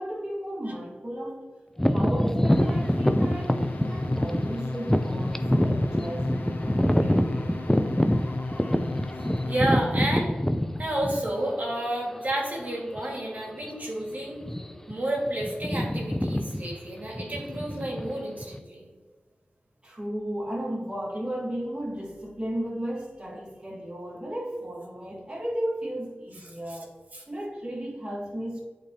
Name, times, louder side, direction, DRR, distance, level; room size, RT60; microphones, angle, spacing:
voice 1, 0.0-1.6 1.8-7.6 19.8-26.9 27.3-28.6, equal, 25° right, -5 dB, 1.5 m, -34 dB
sound 1, 1.8-11.6 12.2-12.3 13.0-13.2 13.5-13.7 14.4-14.9 15.2-18.6, equal, 10° left, 0.4 m, -25 dB
sound 2, 2.5-10.1, left 2 dB, 65° left, 0.5 m, -35 dB
voice 2, 9.5-10.3 10.8-14.4 14.9-18.9 26.7-26.8 27.1-27.2, right 1 dB, 50° right, -2 dB, 1.7 m, -30 dB
8.4 x 4.1 x 2.8 m, 1.4 s
cardioid pair, 50°, 4 cm